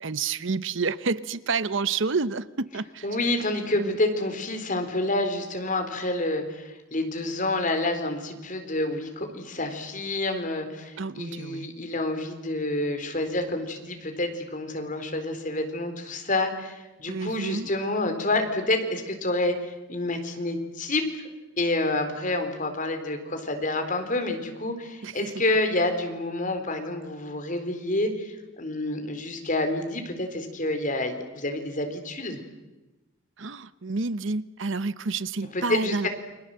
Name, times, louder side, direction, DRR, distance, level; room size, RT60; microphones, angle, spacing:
voice 1, 0.0-3.1 3.7-4.0 11.0-11.7 17.1-17.7 25.0-25.3 33.4-36.1, right 4 dB, 60° right, 15 dB, 0.8 m, -29 dB
voice 2, 3.0-21.1 21.6-32.4 35.5-36.1, left 2 dB, 40° left, 6 dB, 3.9 m, -28 dB
29.5 x 24.0 x 7.8 m, 1.1 s
head